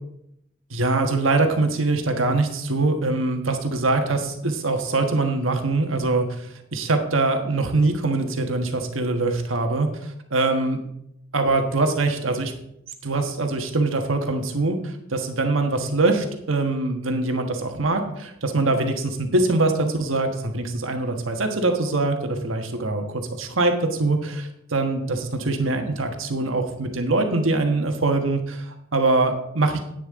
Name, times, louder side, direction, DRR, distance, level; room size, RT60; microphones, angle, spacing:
voice 1, 0.7-10.8 11.3-12.5 13.0-29.8, right 2 dB, 85° right, 5 dB, 1.4 m, -23 dB
10.5 x 9.4 x 3.7 m, 0.77 s
head